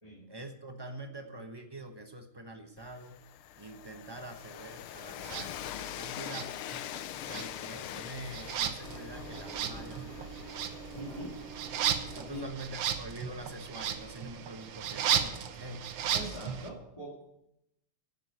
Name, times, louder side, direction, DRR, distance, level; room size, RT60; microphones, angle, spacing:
voice 1, 0.3-3.2 3.6-6.6 7.2-10.8 12.0-15.9, right 2 dB, 40° right, 6 dB, 0.3 m, -45 dB
Train, 2.8-12.6, left 11 dB, 80° left, 1.5 m, -44 dB
sound 1, 5.2-5.5 6.2-7.0 7.2-16.7, right 9 dB, 80° right, 1.9 m, -35 dB
Engine, 8.8-14.3, right 4 dB, 55° right, 6.4 m, -47 dB
voice 2, 10.9-11.4 12.3-12.5 16.1-17.2, left 1 dB, 15° left, -4 dB, 2.1 m, -42 dB
11.0 x 9.7 x 7.8 m, 0.84 s
omnidirectional pair, 2.4 m